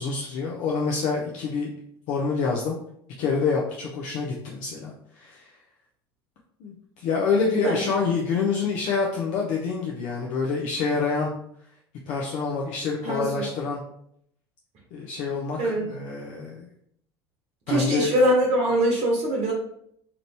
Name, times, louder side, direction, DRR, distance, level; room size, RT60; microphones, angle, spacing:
voice 1, 0.0-1.7 2.1-2.8 3.2-5.5 6.6-11.3 12.1-13.8 14.9-16.6 17.7-18.1, left 5 dB, 60° left, -2 dB, 0.6 m, -27 dB
voice 2, 13.0-13.4 15.6-15.9 17.7-19.5, right 1 dB, 50° right, -2 dB, 0.9 m, -23 dB
2.9 x 2.5 x 3.2 m, 0.70 s
hypercardioid pair, 75°, 14 cm